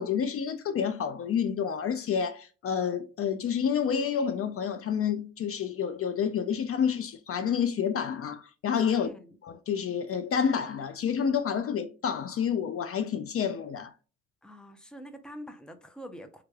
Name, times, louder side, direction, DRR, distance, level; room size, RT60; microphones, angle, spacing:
voice 1, 0.0-9.1 9.4-13.9, left 7 dB, 50° left, 0.4 m, -29 dB
voice 2, 8.9-9.4 14.4-16.4, equal, 5° left, 0.6 m, -45 dB
3.4 x 3.2 x 2.3 m
cardioid pair, 90°, 30 cm